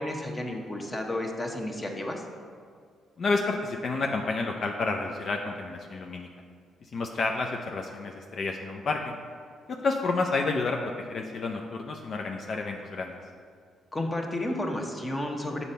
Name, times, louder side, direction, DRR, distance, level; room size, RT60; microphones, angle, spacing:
voice 1, 0.0-2.2 13.9-15.6, left 1 dB, 20° left, 2 dB, 0.9 m, -32 dB
voice 2, 3.2-6.3 6.8-9.1 9.7-13.2, left 3 dB, 50° left, 2 dB, 0.5 m, -30 dB
7.3 x 4.1 x 5.4 m, 2.1 s
cardioid pair, 90°, 0 cm